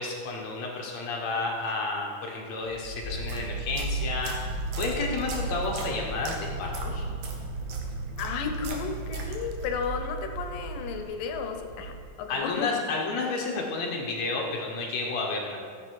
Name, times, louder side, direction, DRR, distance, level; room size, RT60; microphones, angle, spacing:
voice 1, 0.0-7.0 12.3-15.6, left 3 dB, 60° left, 0 dB, 2.0 m, -31 dB
sound 1, 2.6-11.0, right 2 dB, 25° left, 3.5 m, -36 dB
sound 2, 3.1-9.8, right 3 dB, 65° right, 2.5 m, -39 dB
sound 3, 4.5-12.1, right 4 dB, 80° right, 2.5 m, -44 dB
voice 2, 8.2-12.7, left 6 dB, 75° left, 5 dB, 2.4 m, -33 dB
15.0 x 7.4 x 4.6 m, 2.3 s
omnidirectional pair, 4.0 m